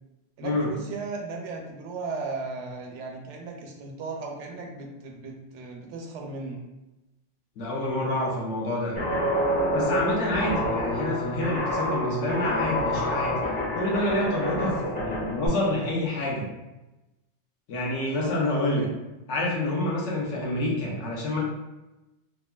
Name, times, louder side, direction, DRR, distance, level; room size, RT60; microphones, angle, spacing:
voice 1, 0.4-6.6 14.5-14.9 17.9-18.3 18.7-18.9, right 3 dB, 80° right, 2 dB, 0.9 m, -36 dB
voice 2, 7.6-8.9 9.7-13.4 13.7-16.5 17.7-18.9 19.3-21.4, left 1 dB, 80° left, -3 dB, 1.1 m, -27 dB
Guitar, 9.0-15.5, equal, 30° left, 0.7 m, -27 dB
3.1 x 2.4 x 2.2 m, 1.0 s
omnidirectional pair, 1.2 m